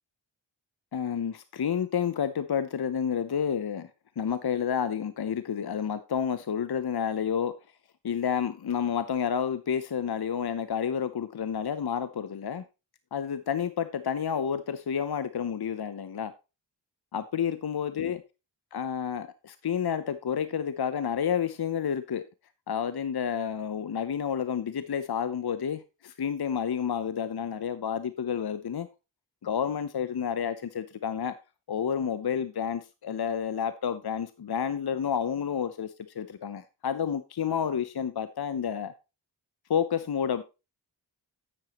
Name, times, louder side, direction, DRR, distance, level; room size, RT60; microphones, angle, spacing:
voice 1, 0.9-3.9 4.2-7.5 8.0-12.6 13.1-16.3 17.1-18.2 18.7-22.2 22.7-28.9 29.4-31.3 31.7-38.9 39.7-40.4, left 8 dB, 55° left, 0.8 m, -30 dB
9.2 x 8.9 x 3.0 m
cardioid pair, 40°, 46 cm